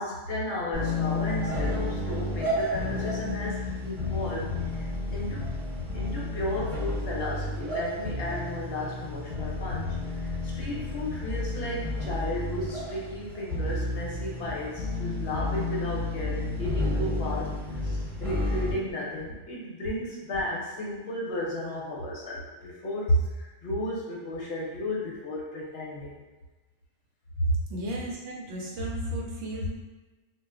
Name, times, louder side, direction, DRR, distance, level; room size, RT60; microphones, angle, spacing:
voice 1, 0.0-5.4 5.9-26.2 27.4-27.5, left 1 dB, 60° left, -4 dB, 0.8 m, -33 dB
Pinko(slower+delay), 0.7-18.7, left 2 dB, 45° right, 0.9 m, -31 dB
voice 2, 27.7-29.7, equal, 75° right, -2 dB, 0.9 m, -33 dB
2.2 x 2.1 x 3.5 m, 1.2 s
omnidirectional pair, 1.3 m